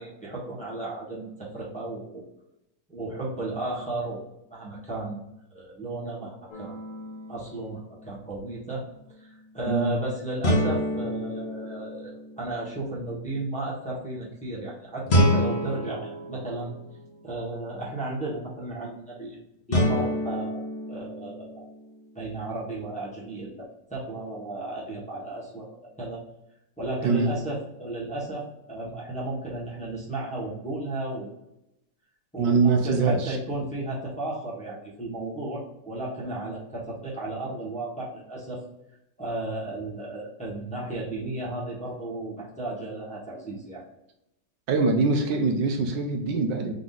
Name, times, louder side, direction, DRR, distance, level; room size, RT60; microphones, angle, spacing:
voice 1, 0.0-2.2 2.9-4.2 4.5-6.8 7.3-8.9 9.1-16.7 17.2-19.4 19.7-21.6 22.1-25.6 26.0-26.2 26.8-31.3 32.3-38.6 39.2-43.8, right 2 dB, 5° left, -6 dB, 1.0 m, -34 dB
sound 1, 6.5-7.5 10.4-12.6 15.1-17.2 19.7-21.9, equal, 65° left, 0.5 m, -27 dB
voice 2, 9.7-10.0 27.0-27.3 32.4-33.4 44.7-46.7, right 4 dB, 80° right, 4 dB, 1.4 m, -23 dB
4.0 x 3.6 x 3.7 m, 0.86 s
omnidirectional pair, 2.0 m